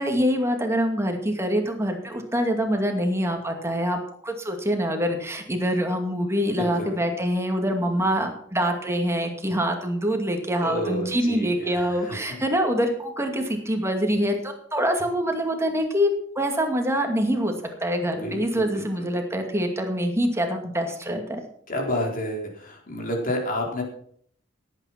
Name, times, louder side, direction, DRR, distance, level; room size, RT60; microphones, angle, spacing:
voice 1, 0.0-17.5 17.8-21.4, equal, 15° right, 3 dB, 2.4 m, -25 dB
voice 2, 6.5-7.0 10.6-12.5 18.2-19.1 21.7-23.8, equal, 45° left, 1 dB, 4.2 m, -30 dB
17.5 x 9.1 x 5.9 m, 0.63 s
head